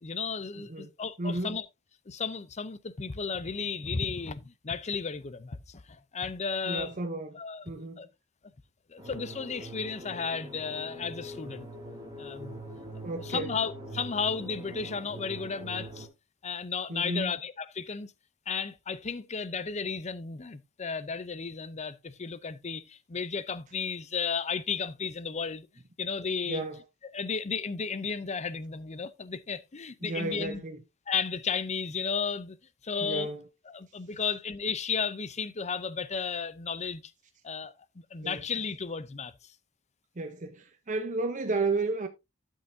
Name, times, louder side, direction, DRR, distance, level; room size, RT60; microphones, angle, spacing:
voice 1, 0.0-1.7 2.1-7.0 7.3-7.6 8.0-8.1 8.9-11.7 12.2-12.6 13.2-16.1 16.4-18.1 18.5-25.7 26.0-26.6 27.1-30.6 31.1-32.6 32.8-33.3 33.7-37.0 37.4-39.3, left 5 dB, 30° left, 0.6 m, -34 dB
voice 2, 1.2-1.6 6.7-7.4 7.7-8.0 13.0-13.6 16.9-17.3 26.5-26.8 30.0-30.8 33.0-33.4 38.2-38.4 40.2-42.1, right 3 dB, 35° right, 0.8 m, -32 dB
sound 1, 9.0-16.1, right 1 dB, 15° right, 2.9 m, -43 dB
12.0 x 6.4 x 2.7 m
head